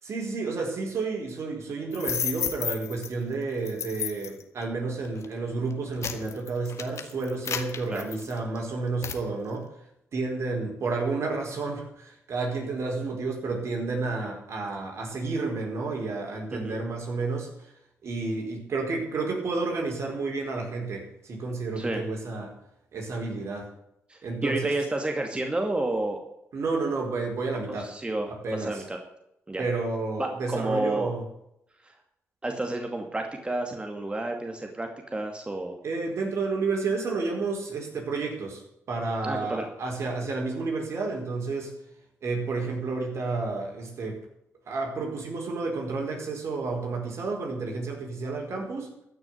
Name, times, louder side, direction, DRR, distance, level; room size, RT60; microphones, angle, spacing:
voice 1, 0.0-9.7 10.1-17.7 18.0-22.6 22.9-23.7 24.2-24.7 26.5-27.9 28.3-28.8 29.6-31.2 35.8-41.8 42.2-44.2 44.7-48.9, right 3 dB, 60° right, 1 dB, 4.8 m, -31 dB
sound 1, 1.9-3.1 3.7-4.4 5.1-5.3 5.7-8.6 9.0-9.2, left 7 dB, 65° left, 1.5 m, -32 dB
voice 2, 24.1-26.2 27.8-29.0 29.5-29.6 30.2-31.1 31.8-31.9 32.4-35.8 39.2-39.7, right 2 dB, 20° right, 3 dB, 2.3 m, -30 dB
14.0 x 6.5 x 9.6 m, 0.81 s
cardioid pair, 65°, 5 cm